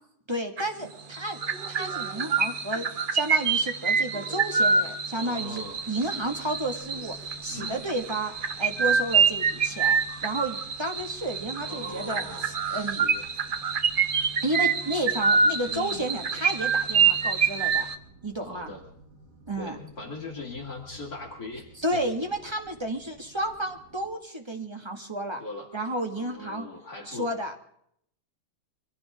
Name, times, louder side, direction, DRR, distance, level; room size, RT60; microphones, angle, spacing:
voice 1, 0.3-1.4 1.7-2.9 3.1-13.1 14.4-17.9 18.2-18.7 19.5-19.8 21.8-25.4 25.7-26.7 27.1-27.6, right 1 dB, 15° right, 4 dB, 1.7 m, -32 dB
sound 1, 0.6-0.9 1.1-17.9, right 6 dB, 75° right, 0.4 m, -26 dB
voice 2, 5.1-5.8 7.5-7.8 11.6-13.2 15.7-16.1 18.4-18.8 19.6-22.0 25.4-25.7 26.1-27.3, left 2 dB, 45° left, 0 dB, 2.8 m, -40 dB
sound 2, 5.3-24.1, right 2 dB, 50° right, 3.5 m, -54 dB
24.5 x 16.0 x 3.6 m, 0.69 s
omnidirectional pair, 2.2 m